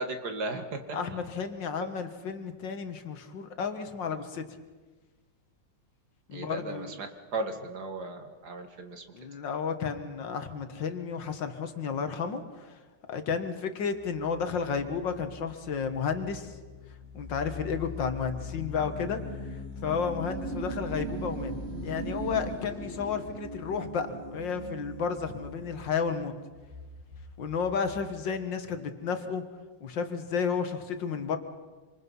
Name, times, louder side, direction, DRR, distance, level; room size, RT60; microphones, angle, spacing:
voice 1, 0.0-1.0 6.3-7.1 7.3-9.0, right 2 dB, 65° right, 6 dB, 2.4 m, -35 dB
voice 2, 0.9-4.4 6.3-7.0 9.1-12.8 13.1-16.5 17.1-19.6 19.8-21.5 21.8-26.3 27.4-29.4 29.8-31.4, left 6 dB, 85° left, 8 dB, 2.2 m, -32 dB
sound 1, 14.0-28.2, equal, 35° right, 2.8 m, -40 dB
26.5 x 26.0 x 5.6 m, 1.4 s
omnidirectional pair, 1.9 m